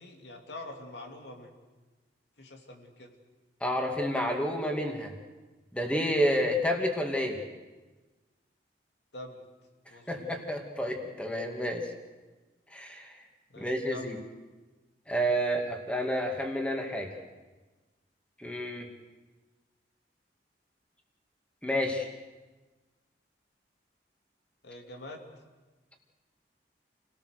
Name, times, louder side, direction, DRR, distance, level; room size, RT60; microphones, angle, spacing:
voice 1, 0.0-1.5 2.4-3.1 9.1-9.5 9.9-10.4 13.5-14.2 24.6-25.3, left 1 dB, 75° left, 3 dB, 2.8 m, -45 dB
voice 2, 3.6-5.1 5.7-7.4 10.1-11.9 12.7-13.1 13.6-14.2 15.1-17.1 18.4-18.9 21.6-22.1, equal, 5° left, 2 dB, 2.4 m, -30 dB
29.0 x 17.5 x 6.7 m, 1.2 s
head